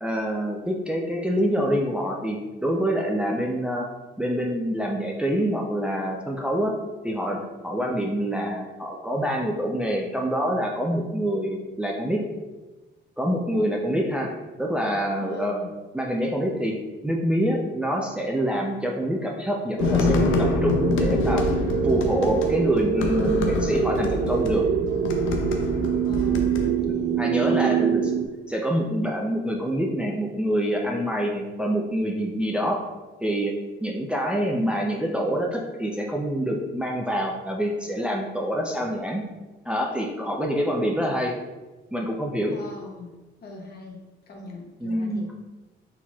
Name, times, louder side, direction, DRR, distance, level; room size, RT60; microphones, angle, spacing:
voice 1, 0.0-3.9 4.2-6.7 7.0-12.2 13.2-15.6 15.9-16.8 17.0-21.5 21.8-24.7 27.2-28.1 28.5-32.8 33.2-33.5 33.8-39.2 39.6-41.4 41.9-42.6 44.8-45.4, equal, 5° right, -1 dB, 0.5 m, -26 dB
voice 2, 15.2-15.7 26.0-27.7 42.5-43.1 43.4-45.3, left 3 dB, 50° left, 0 dB, 1.1 m, -41 dB
sound 1, 19.8-26.7, left 5 dB, 80° left, 0.6 m, -26 dB
sound 2, 19.8-28.3, right 8 dB, 75° right, 0.4 m, -25 dB
4.4 x 4.0 x 2.4 m, 1.2 s
cardioid pair, 90°, 20 cm